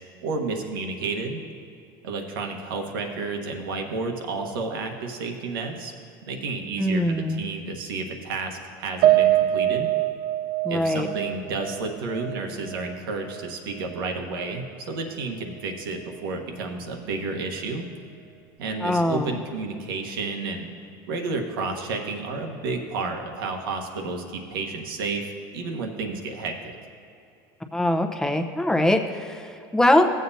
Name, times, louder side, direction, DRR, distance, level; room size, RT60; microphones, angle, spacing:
voice 1, 0.2-1.4 2.0-5.9 6.3-9.9 10.7-17.9 18.6-20.7 21.1-26.5, right 3 dB, 90° right, 3 dB, 1.2 m, -31 dB
voice 2, 6.8-7.4 10.6-11.1 18.8-19.4 27.7-30.1, left 1 dB, 5° left, 5 dB, 0.7 m, -22 dB
Piano, 9.0-13.5 13.9-14.0 14.4-14.5, right 13 dB, 60° right, 0.5 m, -24 dB
16.5 x 7.7 x 2.7 m, 2.7 s
supercardioid pair, 115°, 11 cm